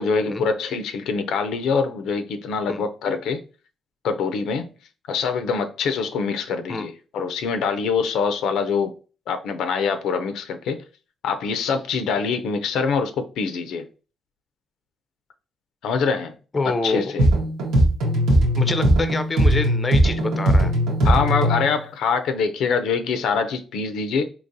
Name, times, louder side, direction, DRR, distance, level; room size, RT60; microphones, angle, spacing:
voice 1, 0.0-3.4 4.0-4.7 5.1-8.9 9.3-10.8 11.2-13.9 15.8-16.3 16.8-17.3 21.0-24.2, left 5 dB, 80° left, 0.4 m, -24 dB
voice 2, 16.5-17.0 18.5-20.7, left 3 dB, 30° left, 0.5 m, -26 dB
sound 1, 17.2-21.7, right 1 dB, 90° right, 1.2 m, -19 dB
3.8 x 2.8 x 2.7 m
cardioid pair, 90°, 0 cm